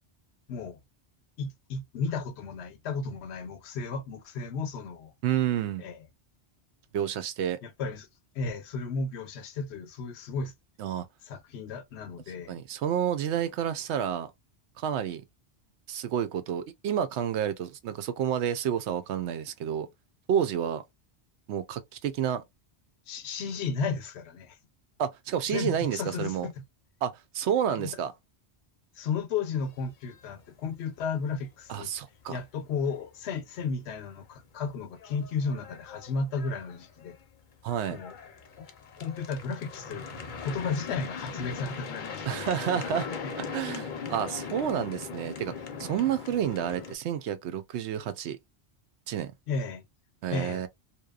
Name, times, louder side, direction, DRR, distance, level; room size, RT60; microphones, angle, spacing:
voice 1, 0.5-0.8 1.4-5.1 5.8-6.0 7.6-8.1 8.3-10.5 11.3-12.6 23.1-24.6 25.5-26.5 27.8-27.9 29.0-31.9 32.3-37.2 37.9-38.2 38.6-38.7 39.0-40.0 40.4-43.0 49.5-49.8 50.3-50.7, left 4 dB, 80° left, 0.9 m, -34 dB
voice 2, 5.2-5.8 6.9-7.6 10.8-11.0 12.5-14.3 14.8-15.2 15.9-19.9 20.3-20.8 21.5-22.4 25.0-26.5 27.0-28.1 31.7-32.4 37.6-38.0 42.3-43.1 43.3-45.5 45.8-48.4 49.1-49.3 50.2-50.7, right 9 dB, 85° right, 0.9 m, -30 dB
sound 1, 29.8-30.4 30.7-30.8 31.1-31.3 31.7-31.8 33.6-33.7 34.3-34.4 34.7-46.9, left 5 dB, 55° left, 0.7 m, -40 dB
2.9 x 2.2 x 2.3 m
omnidirectional pair, 1.1 m